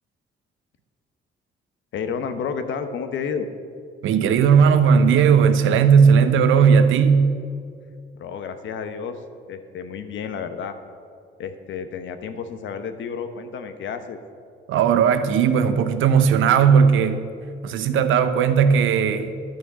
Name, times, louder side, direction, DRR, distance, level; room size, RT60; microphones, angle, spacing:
voice 1, 1.9-3.5 8.2-9.2 9.5-10.8 11.4-14.2, left 6 dB, 70° left, 1.0 m, -31 dB
voice 2, 4.0-7.3 14.7-17.3 17.6-19.4, right 6 dB, 85° right, 0.8 m, -17 dB
11.5 x 6.3 x 7.4 m
cardioid pair, 90°, 20 cm